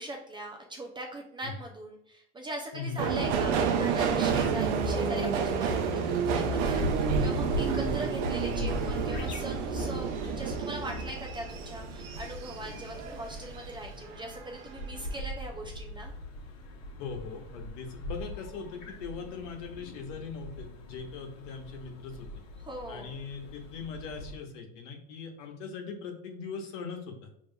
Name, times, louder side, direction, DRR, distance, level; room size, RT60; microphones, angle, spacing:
voice 1, 0.0-16.1 22.6-23.2, right 1 dB, 15° right, 1 dB, 0.3 m, -41 dB
voice 2, 2.7-3.1 7.1-7.3 17.0-22.3 22.9-27.3, left 5 dB, 85° left, 3 dB, 1.1 m, -40 dB
Subway metro underground, 3.0-13.7 14.1-14.8 15.0-15.2, right 5 dB, 80° right, 0.7 m, -30 dB
sound 1, 6.3-24.4, left 1 dB, 60° left, 0.9 m, -40 dB
5.3 x 2.9 x 2.2 m, 0.72 s
supercardioid pair, 140°, 36 cm